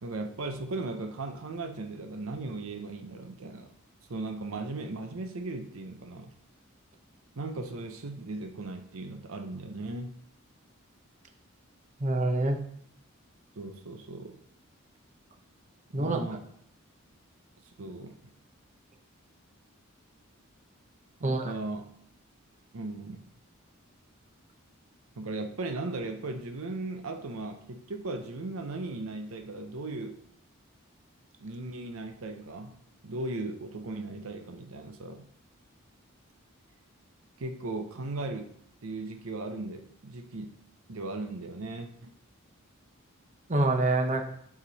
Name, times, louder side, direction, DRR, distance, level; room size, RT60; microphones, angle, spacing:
voice 1, 0.0-3.7 4.1-6.3 7.4-10.1 13.6-14.4 16.0-16.4 17.8-18.3 21.2-21.9 22.7-23.3 25.2-30.2 31.4-32.8 33.0-35.3 37.4-38.6 38.8-40.6 40.9-42.1, right 2 dB, 80° right, 6 dB, 0.7 m, -37 dB
voice 2, 12.0-12.6 15.9-16.2 21.2-21.5 43.5-44.2, right 2 dB, 35° right, 4 dB, 0.8 m, -26 dB
8.4 x 5.0 x 4.1 m, 0.67 s
head